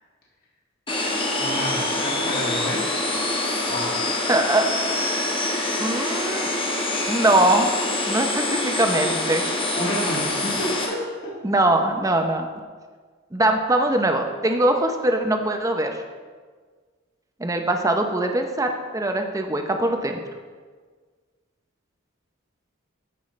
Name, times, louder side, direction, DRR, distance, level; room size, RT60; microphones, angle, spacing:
sound 1, 0.9-10.9, left 2 dB, 25° left, 1.1 m, -25 dB
voice 1, 1.4-2.9 3.7-3.9 9.8-10.7, equal, 45° left, -5 dB, 2.0 m, -29 dB
voice 2, 4.3-4.6 5.8-6.5 7.1-7.7 8.1-9.4 11.4-12.5 13.3-15.9 17.4-20.2, right 1 dB, 15° right, 4 dB, 0.6 m, -22 dB
13.5 x 5.5 x 3.2 m, 1.5 s
head